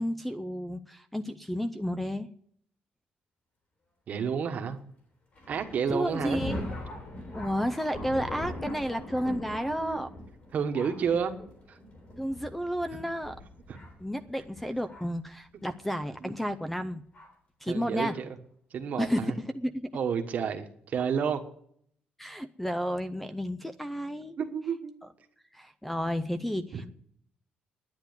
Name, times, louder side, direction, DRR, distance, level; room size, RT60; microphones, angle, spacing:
voice 1, 0.0-2.3 5.9-6.6 7.3-10.1 12.2-13.3 14.0-17.0 17.6-18.1 19.0-19.9 22.2-24.4 25.5-26.9, equal, 5° left, 10 dB, 0.4 m, -32 dB
voice 2, 4.1-4.8 5.5-6.4 9.7-10.1 10.5-11.3 11.7-11.9 13.7-13.8 16.2-16.3 17.7-18.4 18.7-19.3 19.9-21.4 24.4-24.9 26.7-26.8, right 7 dB, 50° right, 7 dB, 1.3 m, -30 dB
Thunder, 5.3-15.3 16.0-16.1 17.1-17.3 18.1-18.2, left 1 dB, 40° left, 3.9 m, -41 dB
10.5 x 9.7 x 8.0 m, 0.65 s
cardioid pair, 175°, 3 cm